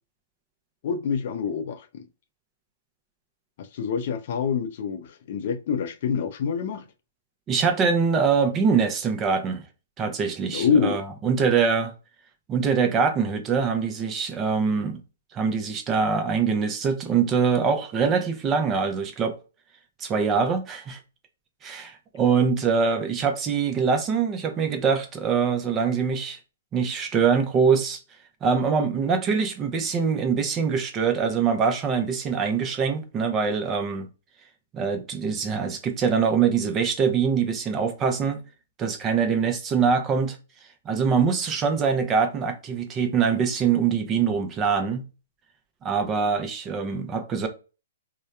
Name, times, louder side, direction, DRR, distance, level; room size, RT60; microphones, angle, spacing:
voice 1, 0.8-2.0 3.6-6.9 10.5-11.0, left 6 dB, 55° left, 0.4 m, -26 dB
voice 2, 7.5-9.6 10.0-11.9 12.5-15.0 15.3-19.4 20.0-21.0 21.6-26.4 26.7-28.0 28.4-34.1 34.7-38.4 38.8-40.4 40.9-45.0 45.8-47.5, right 6 dB, 20° right, 0.5 m, -23 dB
2.7 x 2.1 x 2.3 m
hypercardioid pair, 130°, 0 cm